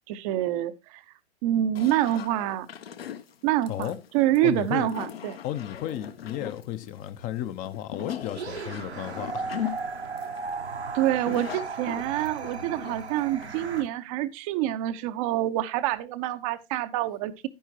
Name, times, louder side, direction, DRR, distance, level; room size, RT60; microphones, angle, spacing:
voice 1, 0.1-1.0 1.4-2.7 3.4-5.4 10.9-17.5, right 13 dB, 30° right, 0.8 m, -27 dB
sound 1, 1.7-13.9, left 9 dB, 65° left, 1.3 m, -39 dB
voice 2, 4.4-4.9 5.4-9.5, left 11 dB, 25° left, 0.8 m, -33 dB
sound 2, 8.3-13.8, right 4 dB, 80° right, 1.4 m, -36 dB
10.5 x 10.0 x 2.8 m
figure-of-eight pair, 105°, 33 cm